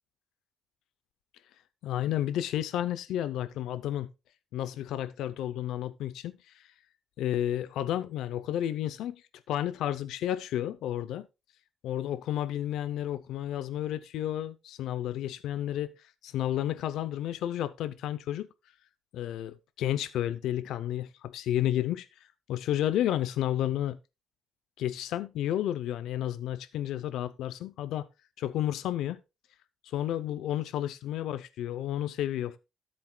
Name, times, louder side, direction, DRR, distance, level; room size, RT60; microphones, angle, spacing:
voice 1, 1.8-4.1 4.5-6.7 7.2-9.2 9.5-11.3 11.8-16.0 16.2-18.5 19.1-24.0 24.8-28.1 28.4-29.2 29.9-32.6, left 12 dB, 85° left, 0.5 m, -31 dB
13.5 x 7.6 x 2.2 m
cardioid pair, 90°, 0 cm